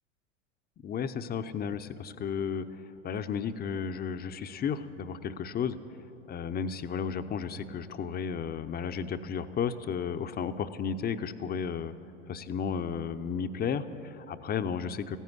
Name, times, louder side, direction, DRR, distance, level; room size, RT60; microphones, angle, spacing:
voice 1, 0.8-2.6 3.0-5.8 6.3-11.9 12.3-15.2, left 7 dB, 25° left, 11 dB, 0.7 m, -33 dB
15.0 x 10.0 x 9.6 m, 3.0 s
hypercardioid pair, 85°, 35 cm